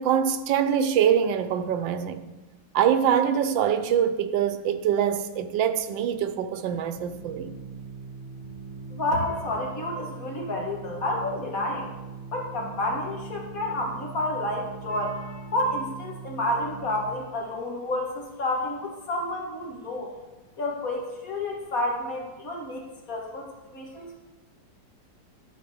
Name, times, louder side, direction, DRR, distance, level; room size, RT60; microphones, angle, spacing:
voice 1, 0.0-2.3 2.7-7.5, right 8 dB, 85° right, 1.4 m, -24 dB
Organ, 6.7-17.4, right 4 dB, 35° left, 1.5 m, -41 dB
voice 2, 9.0-11.9 12.3-20.1 20.6-23.5 23.7-24.1, left 1 dB, 50° left, 2.1 m, -30 dB
12.5 x 4.5 x 6.2 m
omnidirectional pair, 2.0 m